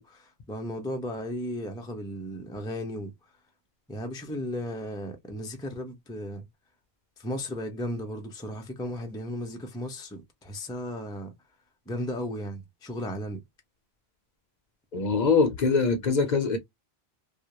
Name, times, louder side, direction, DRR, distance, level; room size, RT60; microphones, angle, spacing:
voice 1, 0.0-3.1 3.9-6.5 7.2-11.3 11.9-13.4, left 1 dB, 5° left, 0.3 m, -35 dB
voice 2, 14.9-16.6, left 4 dB, 55° left, 0.6 m, -23 dB
2.4 x 2.0 x 2.8 m
omnidirectional pair, 1.1 m